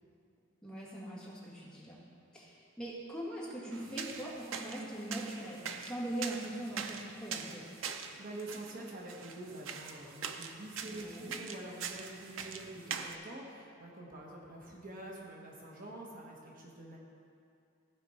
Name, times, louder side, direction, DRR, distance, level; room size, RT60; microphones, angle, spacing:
voice 1, 0.6-2.0 2.3-7.7 10.8-11.4, right 1 dB, 5° left, -7 dB, 1.8 m, -41 dB
sound 1, 3.7-13.2, right 6 dB, 85° right, 0.6 m, -43 dB
voice 2, 8.2-17.0, right 1 dB, 45° right, -3 dB, 1.2 m, -46 dB
15.0 x 5.2 x 4.2 m, 2.4 s
head